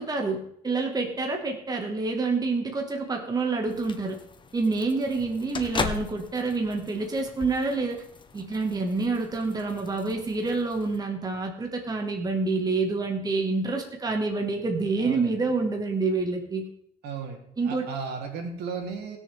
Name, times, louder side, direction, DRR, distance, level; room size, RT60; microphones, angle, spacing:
voice 1, 0.0-4.2 4.5-8.0 8.3-16.7 17.6-17.9, right 3 dB, 20° right, 2 dB, 1.9 m, -27 dB
sound 1, 3.7-11.0, left 4 dB, 30° left, 1.2 m, -38 dB
voice 2, 15.0-15.4 17.0-19.2, right 5 dB, 75° right, 2 dB, 3.0 m, -35 dB
20.0 x 6.9 x 3.6 m, 0.70 s
cardioid pair, 110°, 17 cm